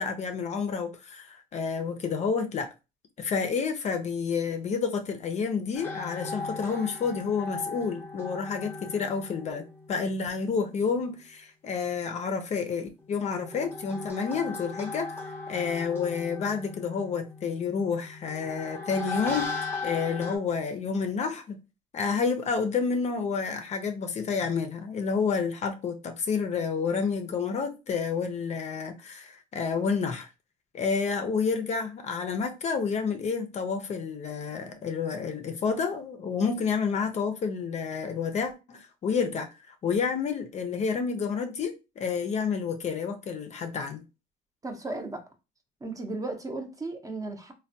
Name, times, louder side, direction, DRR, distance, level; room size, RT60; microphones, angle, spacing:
voice 1, 0.0-2.7 3.2-15.1 15.5-21.6 21.9-30.3 30.7-44.0, left 5 dB, 40° left, 0.5 m, -29 dB
sound 1, 5.7-10.8 13.0-20.4, left 3 dB, 15° left, 0.8 m, -38 dB
voice 2, 44.6-45.2 45.8-47.5, right 2 dB, 20° right, 0.6 m, -35 dB
3.2 x 2.2 x 2.6 m
cardioid pair, 110°, 17 cm